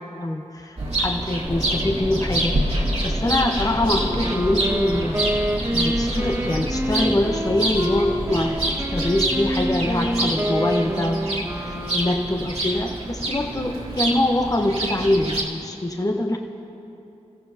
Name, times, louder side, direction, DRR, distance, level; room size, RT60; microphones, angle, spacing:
voice 1, 0.0-5.2 5.7-8.6 8.9-16.4, left 1 dB, 30° left, 2 dB, 1.3 m, -24 dB
sound 1, 0.8-15.4, right 1 dB, 55° right, 2.4 m, -28 dB
sound 2, 1.4-10.3, equal, ahead, 2.1 m, -30 dB
Wind instrument woodwind instrument, 4.1-12.7, equal, 20° right, 1.9 m, -27 dB
27.5 x 15.0 x 3.0 m, 2.9 s
cardioid pair, 40°, 13 cm